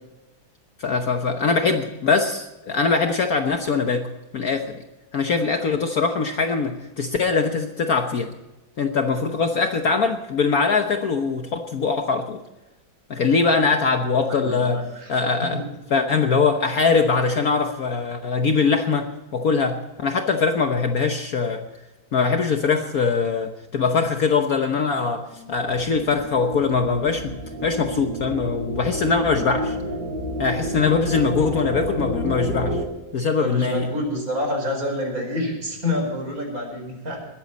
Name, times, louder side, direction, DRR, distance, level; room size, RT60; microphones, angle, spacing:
voice 1, 0.8-4.1 4.3-4.8 5.1-8.3 8.8-12.4 13.1-14.8 15.1-15.6 15.9-21.6 22.1-25.2 25.5-27.3 27.6-29.8 30.4-32.8 33.1-33.9, left 4 dB, 55° left, 5 dB, 1.4 m, -22 dB
voice 2, 14.2-15.1 15.4-15.6 33.4-37.2, left 1 dB, 45° right, 2 dB, 5.2 m, -27 dB
sound 1, 25.2-32.9, equal, 65° right, 6.0 m, -30 dB
21.0 x 13.5 x 4.2 m, 1.0 s
omnidirectional pair, 2.1 m